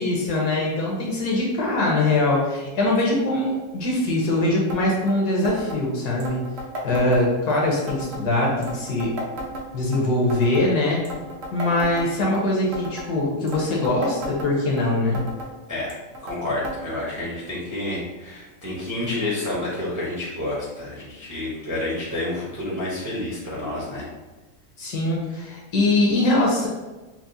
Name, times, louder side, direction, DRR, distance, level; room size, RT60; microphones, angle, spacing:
voice 1, 0.0-6.4 6.8-9.1 9.7-11.0 11.5-15.2 24.8-26.7, left 2 dB, 65° left, -2 dB, 1.3 m, -22 dB
sound 1, 4.7-4.8 5.1-5.2 5.4-5.8 6.2-7.6 7.9-8.2 8.6-10.0 10.3-10.7 11.0-12.4 12.7-13.1 13.5-14.8 15.1-15.5 15.9-16.4 16.6-16.8 17.0-17.1 17.9-18.0 18.8-18.9, right 1 dB, 60° right, 0.9 m, -34 dB
voice 2, 16.2-24.1, left 1 dB, 20° right, -7 dB, 0.5 m, -29 dB
5.9 x 2.0 x 2.6 m, 1.2 s
omnidirectional pair, 1.9 m